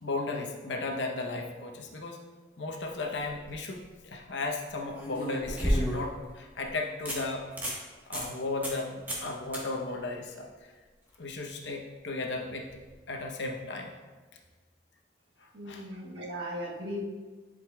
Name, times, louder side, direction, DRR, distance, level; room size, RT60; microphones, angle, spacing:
voice 1, 0.0-2.2 2.6-7.5 8.1-10.5 11.2-12.7 13.1-13.9 15.4-15.8, left 3 dB, 85° left, 2 dB, 0.9 m, -35 dB
sound 1, 3.5-3.6 4.9-6.2 6.6-6.7 7.1-7.2 7.5-7.8 8.1-8.3 8.6-8.8 9.1-9.3 9.5-9.6 12.7-12.8, equal, 10° right, 1.2 m, -31 dB
voice 2, 15.5-17.0, equal, 80° right, -3 dB, 1.4 m, -37 dB
10.5 x 5.0 x 2.3 m, 1.3 s
head